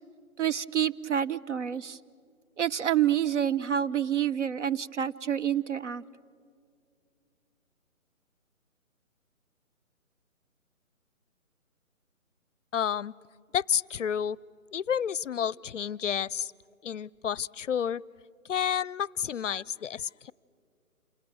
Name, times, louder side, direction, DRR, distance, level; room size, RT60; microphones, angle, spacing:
voice 1, 0.4-2.0 2.6-6.0, right 9 dB, 55° right, 14 dB, 0.8 m, -28 dB
voice 2, 12.7-13.1 13.5-14.4 14.7-16.5 16.8-18.0 18.4-20.3, left 8 dB, 60° left, 25 dB, 0.5 m, -30 dB
28.0 x 27.0 x 6.2 m, 2.3 s
hypercardioid pair, 165°, 43 cm